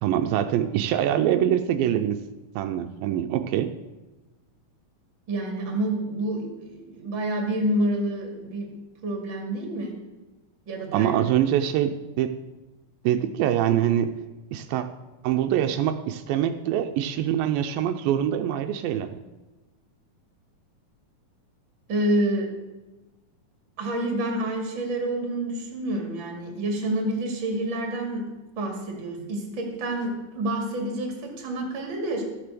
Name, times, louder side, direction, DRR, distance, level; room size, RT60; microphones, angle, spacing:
voice 1, 0.0-2.2 2.6-3.7 10.9-12.3 13.0-14.1 14.5-14.9 15.2-19.2, right 10 dB, 85° right, 7 dB, 2.3 m, -24 dB
voice 2, 5.3-8.7 9.0-10.0 10.7-11.1 21.9-22.5 23.8-28.2 28.6-32.2, right 1 dB, 40° right, 2 dB, 2.5 m, -28 dB
14.0 x 6.8 x 6.8 m, 1.1 s
omnidirectional pair, 4.1 m